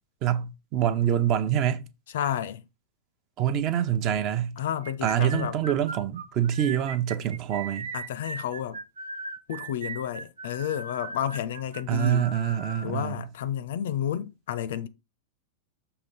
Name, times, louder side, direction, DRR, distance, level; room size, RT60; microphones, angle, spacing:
voice 1, 0.2-1.9 3.4-4.6 5.0-7.9 11.9-13.1, right 10 dB, 40° right, 0.7 m, -26 dB
voice 2, 2.1-2.6 4.6-5.6 7.9-8.8 9.5-12.3 12.8-14.9, left 10 dB, 60° left, 0.5 m, -31 dB
sound 1, 4.8-12.9, right 4 dB, 75° right, 0.6 m, -38 dB
6.6 x 2.9 x 5.5 m
figure-of-eight pair, 90°, 0 cm